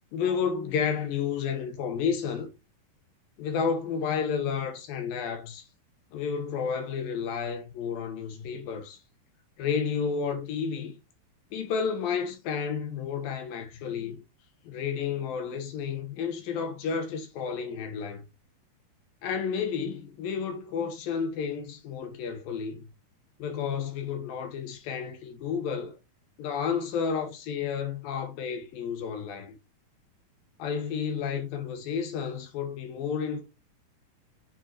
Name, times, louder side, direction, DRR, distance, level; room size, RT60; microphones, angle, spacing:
voice 1, 0.1-2.5 3.4-5.7 6.1-9.0 9.6-10.9 11.5-14.2 14.6-18.2 19.2-22.9 23.4-25.9 26.4-29.6 30.6-33.4, left 6 dB, 80° left, 2.9 m, -31 dB
7.2 x 4.7 x 3.0 m
omnidirectional pair, 4.1 m